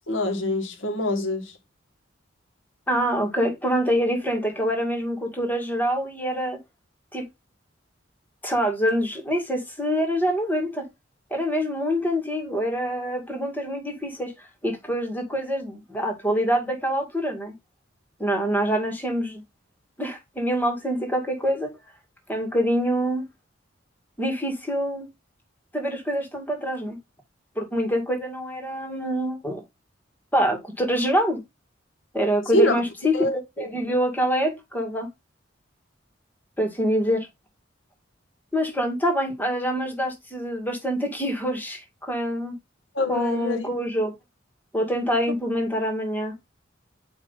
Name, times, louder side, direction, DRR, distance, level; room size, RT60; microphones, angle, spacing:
voice 1, 0.1-1.5 32.5-32.8 33.1-33.7 43.0-43.7, left 1 dB, 85° left, 1.9 m, -25 dB
voice 2, 2.9-6.6 7.1-7.2 8.4-10.9 11.3-17.5 18.2-19.4 20.0-21.7 22.3-23.2 24.2-25.1 25.7-27.0 27.6-29.6 30.3-31.4 32.1-33.3 33.6-35.1 36.6-37.3 38.5-42.6 43.1-44.2 44.7-46.3, equal, 10° left, 2.2 m, -25 dB
8.9 x 3.2 x 4.1 m
head